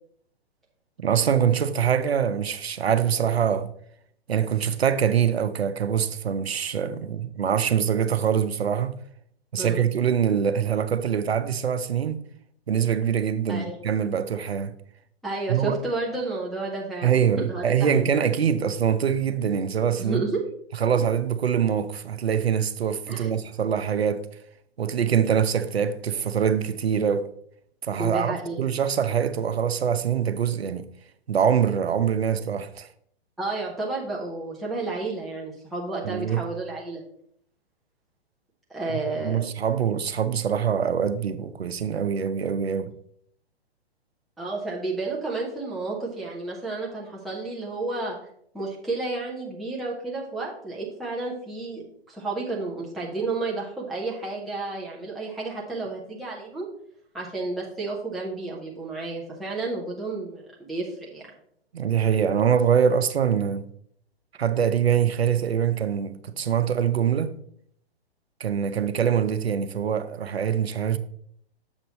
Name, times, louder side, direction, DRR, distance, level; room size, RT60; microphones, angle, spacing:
voice 1, 1.0-3.7 4.3-9.0 9.5-12.2 12.7-14.7 15.5-15.8 17.0-20.2 20.8-24.3 24.8-27.3 27.8-30.9 31.3-32.9 36.0-36.5 39.2-42.9 61.7-63.7 64.4-67.3 68.4-71.0, right 8 dB, 75° right, 0.8 m, -24 dB
voice 2, 15.2-18.1 20.0-20.4 20.9-21.0 23.1-23.3 28.0-28.6 33.4-37.0 38.7-39.4 44.4-48.2 48.5-56.7 57.1-61.2, right 3 dB, ahead, 0.3 m, -31 dB
7.2 x 5.4 x 4.1 m
figure-of-eight pair, 120°, 31 cm